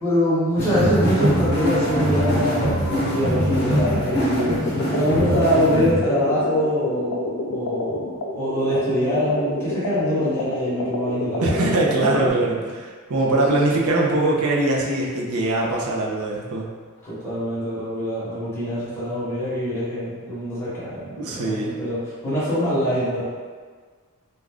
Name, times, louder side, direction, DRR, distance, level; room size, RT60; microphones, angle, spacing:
voice 1, 0.0-12.4 13.3-13.8 17.0-23.2, equal, 10° left, -11 dB, 0.9 m, -24 dB
sound 1, 0.6-5.9, equal, 45° left, 0.7 m, -22 dB
sound 2, 3.6-12.3, left 2 dB, 75° left, 0.3 m, -29 dB
voice 2, 11.4-16.6 21.2-21.8, right 2 dB, 80° right, -2 dB, 0.5 m, -22 dB
2.4 x 2.2 x 3.3 m, 1.5 s
head